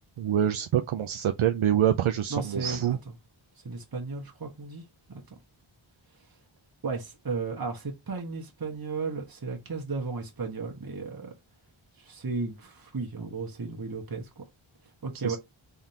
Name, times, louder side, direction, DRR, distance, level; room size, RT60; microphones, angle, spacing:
voice 1, 0.2-3.0 15.2-15.4, right 10 dB, 80° right, 0.5 m, -25 dB
voice 2, 2.3-3.0 3.6-4.8 5.1-5.2 6.8-11.3 12.0-14.4 15.0-15.4, right 4 dB, 45° right, 1.2 m, -34 dB
3.6 x 3.4 x 2.8 m
wide cardioid pair, 45°, 48 cm